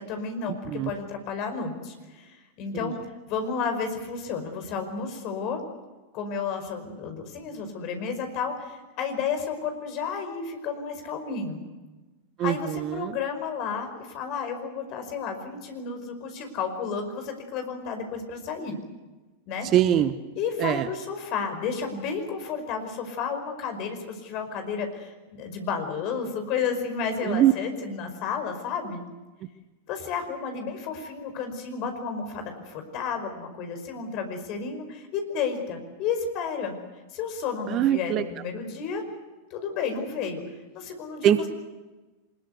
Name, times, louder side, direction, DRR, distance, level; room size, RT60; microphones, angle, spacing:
voice 1, 0.0-3.0 3.3-5.6 6.1-11.6 12.4-18.8 19.5-19.7 20.4-29.0 29.9-36.7 37.1-39.0 39.5-40.4 40.7-41.5, left 5 dB, 40° left, 6 dB, 5.2 m, -32 dB
voice 2, 19.7-20.1 20.6-20.8 27.3-27.5 37.7-38.2 41.2-41.5, right 11 dB, 35° right, 13 dB, 1.2 m, -21 dB
24.5 x 21.5 x 8.2 m, 1.2 s
figure-of-eight pair, 90°, 0 cm